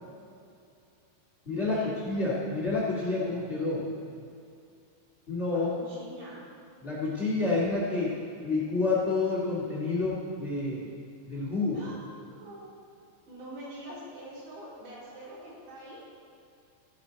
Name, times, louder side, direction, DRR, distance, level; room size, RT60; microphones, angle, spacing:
voice 1, 1.4-3.8 5.3-5.7 6.8-8.1 8.4-10.9 11.3-11.8, left 3 dB, 80° left, -6 dB, 0.6 m, -29 dB
voice 2, 5.5-6.5 11.7-12.0 12.3-12.7 13.3-16.1, right 1 dB, 60° right, -6 dB, 5.2 m, -44 dB
14.0 x 12.5 x 4.1 m, 2.5 s
omnidirectional pair, 5.6 m